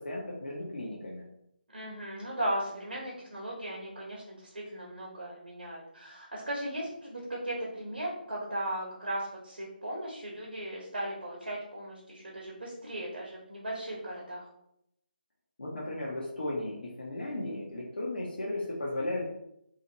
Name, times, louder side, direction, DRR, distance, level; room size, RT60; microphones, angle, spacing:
voice 1, 0.0-1.2 15.6-19.2, left 1 dB, 70° left, -5 dB, 0.8 m, -35 dB
voice 2, 1.7-14.5, right 1 dB, 75° right, -4 dB, 1.0 m, -37 dB
2.8 x 2.4 x 2.9 m, 0.77 s
figure-of-eight pair, 155°, 5 cm